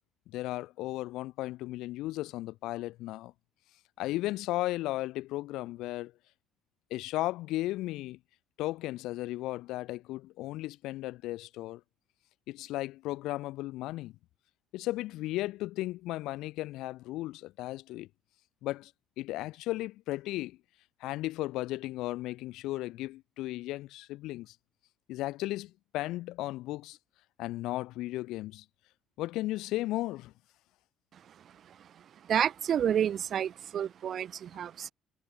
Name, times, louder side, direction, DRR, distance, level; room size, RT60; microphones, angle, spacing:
voice 1, 0.3-3.3 4.0-6.1 6.9-8.2 8.6-11.8 12.5-14.2 14.7-18.1 18.6-18.9 19.2-20.6 21.0-24.6 25.1-27.0 27.4-28.6 29.2-30.3, left 17 dB, 70° left, 0.7 m, -35 dB
voice 2, 32.2-34.9, right 9 dB, 40° right, 0.5 m, -30 dB
cardioid pair, 140°, 0 cm